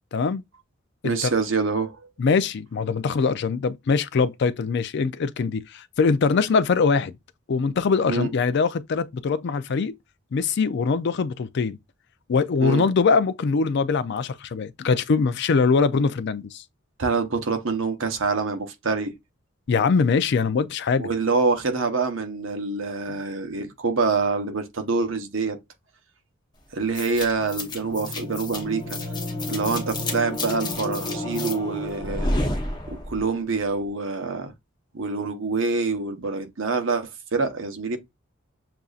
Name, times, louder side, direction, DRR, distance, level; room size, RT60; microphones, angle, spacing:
voice 1, 0.1-0.4 1.0-1.3 2.2-7.1 7.5-9.9 10.3-11.8 12.3-16.6 19.7-21.1, left 5 dB, 60° left, 0.4 m, -22 dB
voice 2, 1.0-2.0 8.1-8.3 12.6-12.9 17.0-19.1 21.0-25.6 26.7-29.0 29.5-32.4 32.9-34.5 34.9-38.0, right 4 dB, 70° right, 0.9 m, -26 dB
sound 1, 27.0-33.3, left 1 dB, 20° left, 0.9 m, -30 dB
6.8 x 2.5 x 2.4 m
head